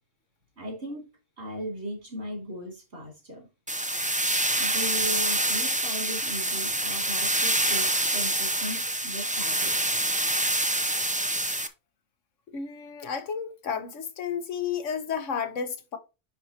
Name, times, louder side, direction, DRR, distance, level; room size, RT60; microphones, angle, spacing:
voice 1, 0.6-1.1 1.4-3.5 4.6-9.7, equal, 60° right, 3.5 m, -37 dB
sound 1, 3.7-11.7, right 1 dB, 10° right, 0.4 m, -26 dB
voice 2, 12.5-16.0, left 7 dB, 85° left, 1.4 m, -32 dB
10.0 x 4.5 x 2.8 m
omnidirectional pair, 1.2 m